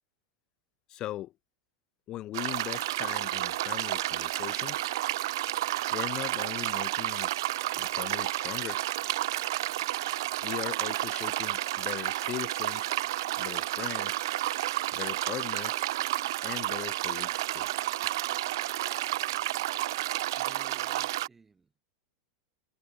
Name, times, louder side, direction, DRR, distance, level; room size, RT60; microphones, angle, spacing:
voice 1, 0.9-1.3 2.1-4.9 5.9-7.3 7.8-8.8 10.4-13.0 13.4-14.3 14.9-15.9 16.4-17.7, left 14 dB, 30° left, 3.1 m, -39 dB
sound 1, 2.3-21.3, right 16 dB, 70° right, 0.5 m, -31 dB
voice 2, 20.4-21.8, right 4 dB, 10° right, 6.7 m, -54 dB
supercardioid pair, 150°, 2 cm